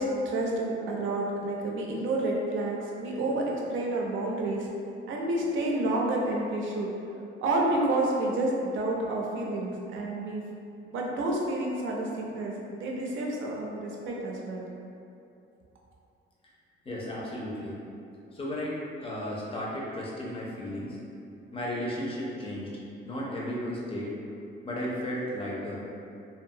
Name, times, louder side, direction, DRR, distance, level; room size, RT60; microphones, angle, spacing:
voice 1, 0.0-4.7 5.1-6.9 7.4-10.4 10.8-14.7, right 2 dB, 75° right, -2 dB, 0.5 m, -29 dB
voice 2, 16.9-17.8 18.3-21.0 21.5-22.7 23.0-24.1 24.6-25.8, equal, 25° left, -5 dB, 0.5 m, -34 dB
2.6 x 2.3 x 2.7 m, 2.6 s
cardioid pair, 145°, 21 cm